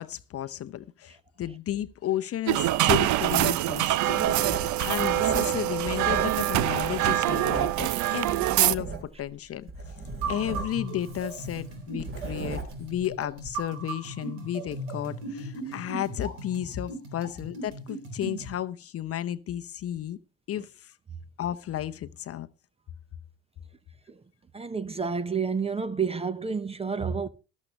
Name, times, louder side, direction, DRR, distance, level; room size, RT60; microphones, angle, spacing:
voice 1, 0.0-9.7 10.3-20.2 20.5-20.9 21.4-22.5, left 11 dB, 40° left, 0.8 m, -33 dB
sound 1, 2.5-8.7, right 14 dB, 50° right, 0.7 m, -25 dB
Writing, 4.2-6.5 6.8-9.3 9.7-13.0 13.4-13.6, right 4 dB, 35° right, 3.6 m, -35 dB
sound 2, 10.0-18.5, right 2 dB, 80° right, 4.1 m, -38 dB
voice 2, 24.5-27.3, right 5 dB, 15° right, 0.8 m, -29 dB
13.5 x 12.5 x 3.2 m
hypercardioid pair, 75°, 38 cm